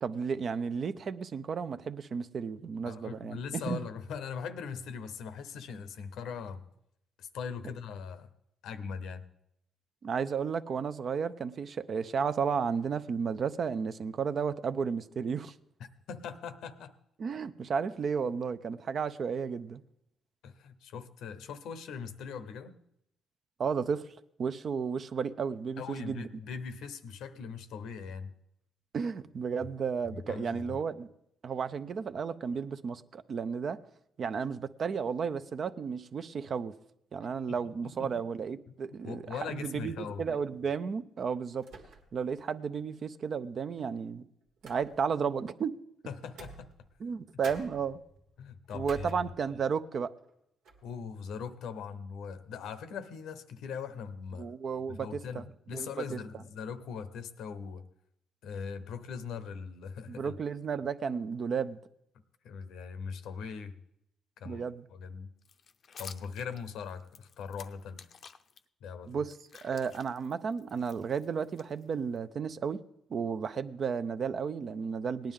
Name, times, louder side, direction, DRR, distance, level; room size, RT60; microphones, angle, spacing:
voice 1, 0.0-3.8 10.0-15.5 17.2-19.8 23.6-24.0 24.4-26.3 28.9-31.1 31.4-33.8 34.2-36.7 37.1-41.7 42.1-44.2 44.6-45.8 47.0-48.0 48.7-50.1 54.4-55.4 55.7-56.2 60.1-61.8 64.4-64.8 69.1-69.3 69.6-72.8 73.1-75.3, right 6 dB, 50° right, 0.5 m, -33 dB
voice 2, 2.8-6.7 7.2-8.3 8.6-9.2 16.1-16.9 18.2-18.3 20.4-22.8 25.8-28.3 30.3-30.8 37.5-37.6 37.8-38.1 39.0-40.2 46.1-46.7 48.4-49.2 50.8-54.5 54.9-57.8 58.4-60.4 62.4-63.8 64.4-64.6 64.9-65.3 66.0-68.1 68.8-69.1, left 6 dB, 80° left, 0.8 m, -40 dB
sound 1, 40.3-40.6 41.6-42.3 42.7-42.8 43.8-45.2 46.2-47.1 47.4-49.8 50.2-50.3 50.6-51.0, right 3 dB, 85° right, 1.7 m, -51 dB
sound 2, 65.4-68.6 69.1-72.2, left 6 dB, 55° left, 0.6 m, -52 dB
18.0 x 10.5 x 3.7 m
cardioid pair, 90°, 0 cm